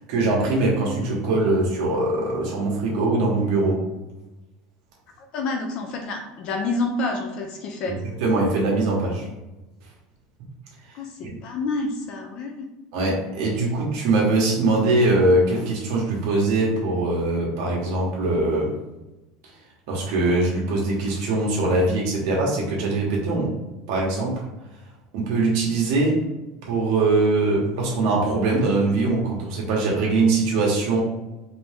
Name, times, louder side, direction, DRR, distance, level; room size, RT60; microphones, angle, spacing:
voice 1, 0.1-3.8 7.9-9.3 12.9-18.7 19.9-23.5 23.9-24.4 25.1-26.2 26.7-31.0, right 2 dB, 65° right, -3 dB, 1.2 m, -22 dB
voice 2, 5.3-8.0 10.9-12.7, left 3 dB, 40° left, 3 dB, 0.5 m, -28 dB
4.4 x 2.7 x 3.5 m, 1.0 s
cardioid pair, 170°, 2 cm